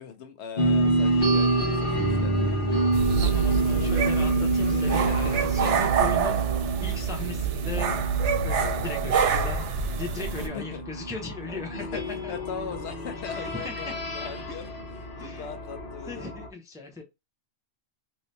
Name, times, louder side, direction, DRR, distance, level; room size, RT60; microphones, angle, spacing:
voice 1, 0.0-2.9 3.7-3.9 4.7-5.2 9.0-9.6 10.4-10.8 11.5-16.2, left 7 dB, 75° left, 0.9 m, -40 dB
sound 1, 0.6-16.5, right 2 dB, 50° left, 1.0 m, -28 dB
sound 2, 2.9-10.5, right 6 dB, 85° right, 0.9 m, -26 dB
voice 2, 3.2-6.4 6.8-8.0 8.4-9.7 10.0-11.8 12.2-12.3 13.2-13.9 14.5-14.7 15.2-15.5 16.1-17.0, left 3 dB, 5° right, 0.4 m, -38 dB
2.7 x 2.7 x 3.2 m
omnidirectional pair, 1.2 m